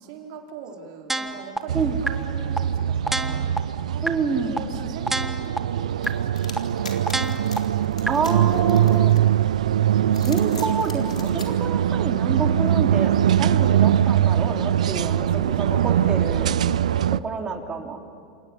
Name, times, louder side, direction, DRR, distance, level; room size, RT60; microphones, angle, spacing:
voice 1, 0.0-3.4 3.9-6.7 13.3-13.5 15.0-17.1, right 6 dB, 60° right, 2 dB, 4.4 m, -42 dB
sound 1, 1.1-1.6 2.1-2.2 2.6-2.7 3.1-3.6 4.1-4.2 4.6-4.7 5.1-5.6 6.1-6.2 6.6-6.7 7.1-7.6 8.1-8.2, right 2 dB, 5° right, 1.7 m, -26 dB
sound 2, 1.7-17.2, right 10 dB, 80° right, 0.7 m, -22 dB
voice 2, 4.0-4.6 8.1-9.1 10.2-16.6 17.1-18.0, right 4 dB, 20° right, 3 dB, 3.7 m, -28 dB
sound 3, 6.0-9.5 10.0-11.5, left 5 dB, 90° left, 4.0 m, -41 dB
28.0 x 28.0 x 7.1 m, 2.5 s
hypercardioid pair, 95°, 4 cm